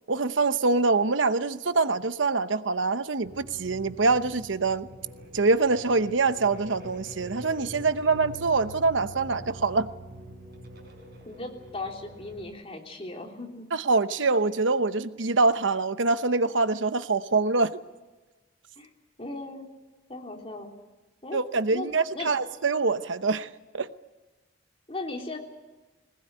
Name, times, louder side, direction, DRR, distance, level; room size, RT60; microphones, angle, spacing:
voice 1, 0.1-4.9 5.3-9.9 13.7-17.8 21.3-23.9, right 3 dB, 85° right, 0.9 m, -25 dB
sound 1, 3.2-12.5, equal, 55° right, 5.4 m, -45 dB
Keyboard (musical), 8.0-11.7, right 4 dB, 80° left, 7.6 m, -50 dB
voice 2, 11.3-13.7 18.8-18.9 19.2-19.7 20.1-20.7 21.2-21.4 21.7-22.3 24.9-25.4, left 2 dB, 30° left, 3.4 m, -37 dB
21.5 x 20.0 x 9.0 m
head